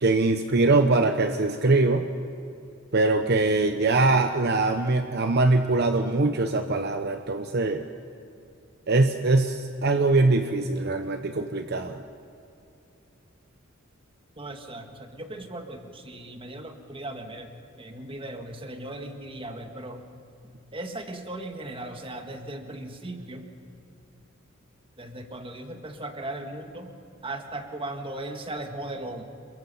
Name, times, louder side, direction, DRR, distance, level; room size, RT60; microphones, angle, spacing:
voice 1, 0.0-2.0 2.9-7.8 8.9-12.0, right 2 dB, 55° right, 7 dB, 0.9 m, -22 dB
voice 2, 14.4-17.5 17.8-20.0 20.7-23.4 25.0-26.9 27.2-29.2, right 1 dB, 25° right, 5 dB, 1.9 m, -37 dB
28.0 x 22.5 x 5.6 m, 2.7 s
head